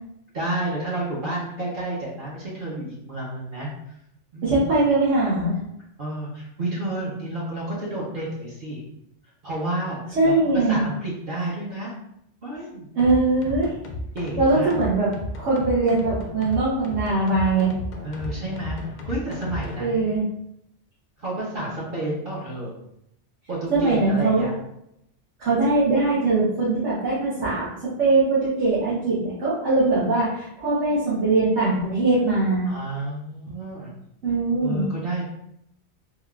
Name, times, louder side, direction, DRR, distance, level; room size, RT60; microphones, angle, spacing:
voice 1, 0.3-3.9 4.3-4.7 6.0-8.8 9.4-11.9 12.4-12.9 14.1-14.7 18.0-20.1 21.2-22.8 23.5-24.5 32.6-33.9 34.6-35.2, right 1 dB, 55° right, -6 dB, 0.8 m, -30 dB
voice 2, 4.4-5.6 10.1-10.8 13.0-13.7 14.4-15.1 15.4-17.7 19.8-20.2 23.7-24.4 25.4-27.7 28.0-32.7 34.2-34.8, right 3 dB, 75° right, -9 dB, 1.1 m, -21 dB
sound 1, 13.0-19.8, left 2 dB, 60° left, 0.5 m, -34 dB
3.4 x 2.3 x 2.2 m, 0.78 s
omnidirectional pair, 1.2 m